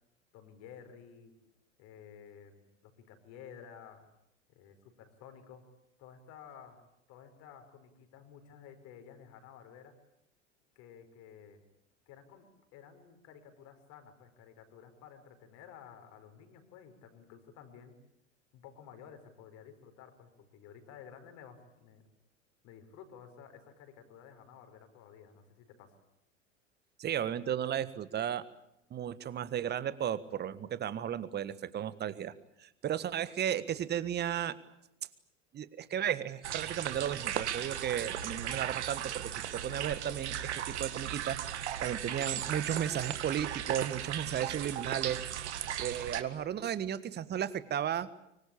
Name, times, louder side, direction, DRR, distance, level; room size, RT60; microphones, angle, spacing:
voice 1, 0.3-1.3 1.8-4.1 4.5-5.7 6.0-9.9 10.8-11.6 12.1-18.0 18.5-22.0 22.6-26.0, left 8 dB, 45° left, 7 dB, 5.2 m, -53 dB
voice 2, 27.0-28.4 28.9-32.3 32.6-34.6 35.5-45.2 45.8-48.1, right 10 dB, 25° right, 16 dB, 1.5 m, -34 dB
sound 1, 36.4-46.2, right 10 dB, 65° right, 1.9 m, -37 dB
24.5 x 24.5 x 8.6 m, 0.82 s
figure-of-eight pair, 80°, 37 cm